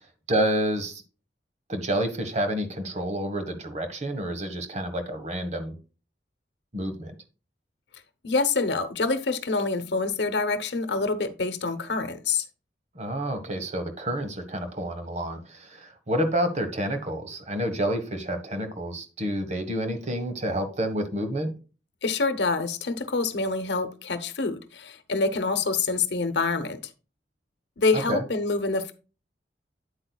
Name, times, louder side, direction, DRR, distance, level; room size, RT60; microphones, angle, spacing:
voice 1, 0.3-1.0 1.7-5.8 6.7-7.1 12.9-21.5 27.9-28.2, right 1 dB, 40° right, 1.4 m, -29 dB
voice 2, 8.2-12.4 22.0-26.8 27.8-28.9, left 3 dB, 75° left, 0.9 m, -26 dB
8.9 x 8.4 x 2.3 m
head